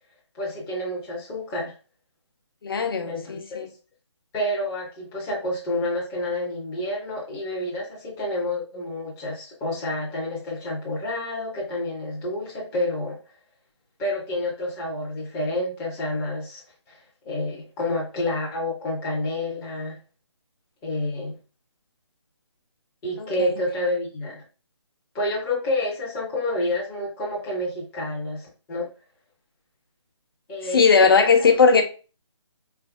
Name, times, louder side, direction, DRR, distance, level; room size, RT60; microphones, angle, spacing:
voice 1, 0.3-1.7 3.0-3.6 4.3-13.2 14.0-16.6 16.9-17.0 17.3-20.0 20.8-21.4 23.0-24.4 25.1-28.9 30.5-31.5, left 1 dB, 10° left, 0.5 m, -29 dB
voice 2, 2.6-3.7 23.2-23.6 30.7-31.8, left 5 dB, 50° left, 0.7 m, -18 dB
4.2 x 3.3 x 2.3 m
figure-of-eight pair, 160°, 15 cm